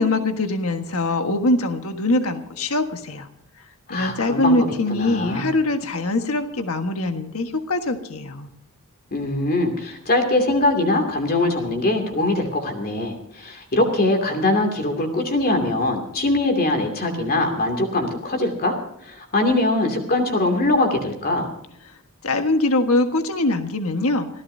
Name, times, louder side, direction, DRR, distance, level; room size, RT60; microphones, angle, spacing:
voice 1, 0.0-3.3 3.9-8.5 22.2-24.3, left 2 dB, 70° left, 6 dB, 1.5 m, -22 dB
voice 2, 3.9-5.5 9.1-18.7 19.0-21.5, left 2 dB, 45° left, 4 dB, 2.6 m, -22 dB
26.5 x 15.0 x 2.8 m, 0.73 s
head